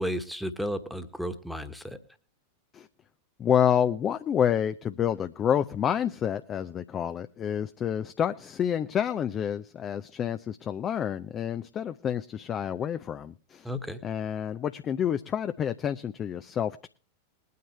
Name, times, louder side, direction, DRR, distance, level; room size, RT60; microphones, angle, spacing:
voice 1, 0.0-2.0 13.6-14.0, equal, ahead, 8 dB, 1.4 m, -33 dB
voice 2, 3.4-13.7 14.0-16.9, left 9 dB, 25° left, 10 dB, 0.6 m, -28 dB
21.0 x 9.4 x 3.3 m, 0.40 s
figure-of-eight pair, 90°, 0 cm